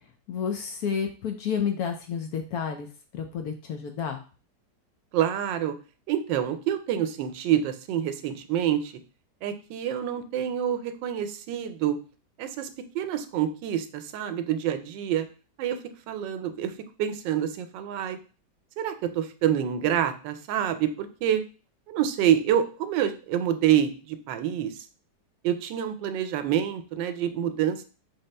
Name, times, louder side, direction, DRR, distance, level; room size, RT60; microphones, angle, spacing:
voice 1, 0.3-2.9 3.1-4.2, left 7 dB, 70° left, 5 dB, 0.9 m, -30 dB
voice 2, 5.1-5.8 6.1-8.9 9.4-12.0 12.4-12.7 12.9-15.3 15.6-15.8 16.1-16.7 17.0-18.2 18.8-21.4 21.9-24.8 25.4-27.8, right 10 dB, 85° right, 9 dB, 1.3 m, -27 dB
4.2 x 3.5 x 3.3 m, 0.37 s
omnidirectional pair, 1.9 m